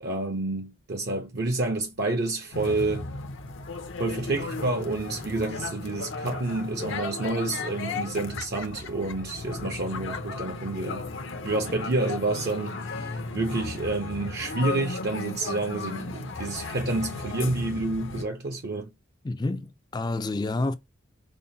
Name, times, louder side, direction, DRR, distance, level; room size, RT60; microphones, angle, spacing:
voice 1, 0.0-3.1 4.0-11.1 11.4-18.9, right 2 dB, 50° right, 0.6 m, -29 dB
sound 1, 2.5-18.2, left 3 dB, 65° left, 0.6 m, -35 dB
voice 2, 19.2-20.7, left 2 dB, 20° left, 0.3 m, -29 dB
5.3 x 2.1 x 2.7 m
head